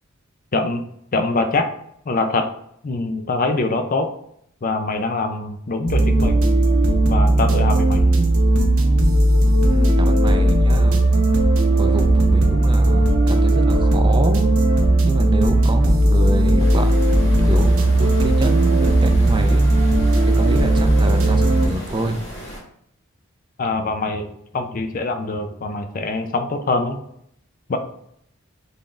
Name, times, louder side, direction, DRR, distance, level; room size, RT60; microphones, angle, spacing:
voice 1, 0.5-0.8 1.1-1.7 2.1-2.5 2.8-4.1 4.6-6.5 7.1-8.1 23.6-27.0 27.7-27.8, left 3 dB, 40° left, 7 dB, 0.5 m, -23 dB
sound 1, 5.9-21.7, right 1 dB, 70° right, 0.7 m, -16 dB
voice 2, 9.7-11.0 11.7-14.5 15.0-19.7 20.2-22.2, right 1 dB, 20° right, 6 dB, 0.5 m, -27 dB
sound 2, 16.6-22.6, equal, 55° left, 1.8 m, -35 dB
4.1 x 3.7 x 3.2 m, 0.70 s
head